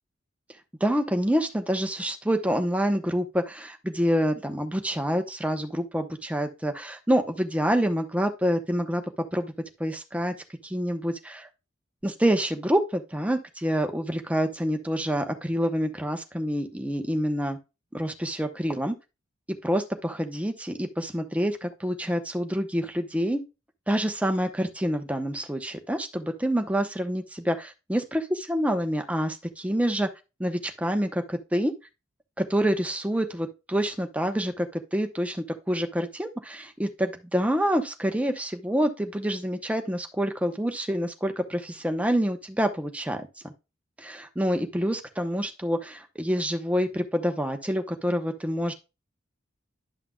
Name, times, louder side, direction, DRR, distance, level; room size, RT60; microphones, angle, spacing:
voice 1, 0.8-9.0 9.3-9.5 9.8-10.3 10.6-11.5 12.0-17.6 17.9-18.9 19.6-23.4 23.9-30.1 30.4-31.7 32.4-43.5 44.0-48.7, equal, 5° right, 6 dB, 0.8 m, -27 dB
11.0 x 5.8 x 2.3 m, 0.27 s
head